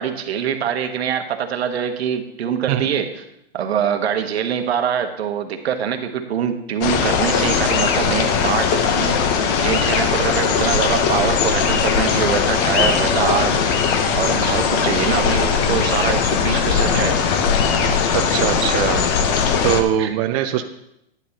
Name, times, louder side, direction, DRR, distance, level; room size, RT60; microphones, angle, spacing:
voice 1, 0.0-3.1 3.5-9.1 9.6-13.6 14.1-17.1 20.0-20.1, right 8 dB, 75° right, 6 dB, 1.2 m, -24 dB
sound 1, 6.8-19.8, left 6 dB, 30° left, 0.8 m, -19 dB
voice 2, 14.2-14.8 18.1-19.1 19.6-20.6, right 11 dB, 35° right, 5 dB, 0.5 m, -22 dB
10.5 x 10.0 x 2.8 m, 0.80 s
hypercardioid pair, 135°, 32 cm